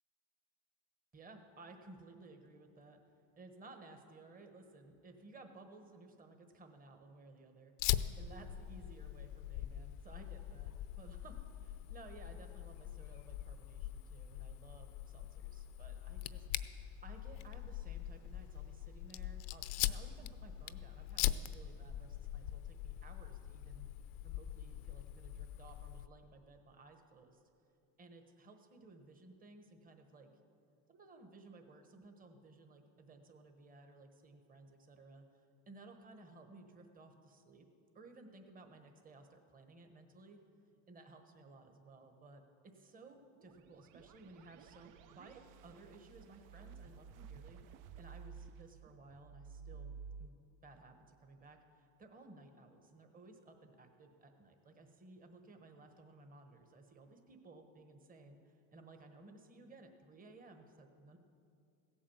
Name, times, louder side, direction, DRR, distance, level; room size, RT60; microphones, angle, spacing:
voice 1, 1.1-3.0 3.4-23.9 24.2-27.4 28.0-30.3 30.9-37.7 37.9-40.4 40.9-49.9 50.2-50.3 50.6-61.2, right 2 dB, 20° right, 5 dB, 1.3 m, -58 dB
Fire, 7.8-26.1, left 13 dB, 75° left, 0.7 m, -42 dB
sound 1, 43.4-50.3, right 6 dB, 50° right, 0.6 m, -53 dB
16.0 x 8.7 x 7.2 m, 2.4 s
supercardioid pair, 120°, 40 cm